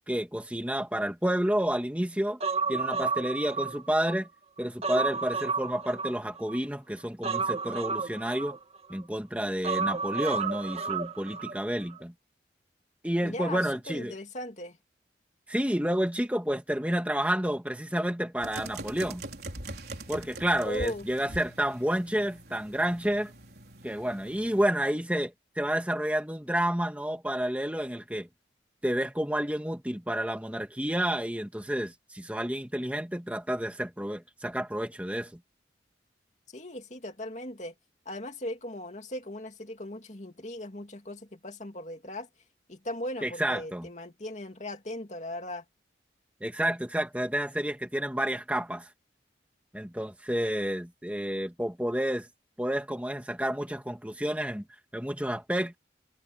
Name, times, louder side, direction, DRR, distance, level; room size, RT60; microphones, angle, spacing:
voice 1, 0.1-2.4 2.7-4.3 4.6-8.6 8.9-12.1 13.0-14.1 15.5-19.3 20.1-23.3 23.8-28.3 28.8-35.3 43.2-43.9 46.4-48.9 49.7-52.3 52.6-54.6 54.9-55.7, right 1 dB, 10° right, 1.9 m, -30 dB
Human voice, 2.4-4.2 4.6-6.6 7.2-9.0 9.6-11.6 11.9-12.0, right 4 dB, 35° right, 1.6 m, -31 dB
voice 2, 13.2-14.8 20.6-21.1 36.5-37.7 38.0-42.3 42.7-45.6, left 1 dB, 40° left, 2.6 m, -38 dB
sound 1, 18.4-24.7, right 2 dB, 60° right, 4.8 m, -43 dB
head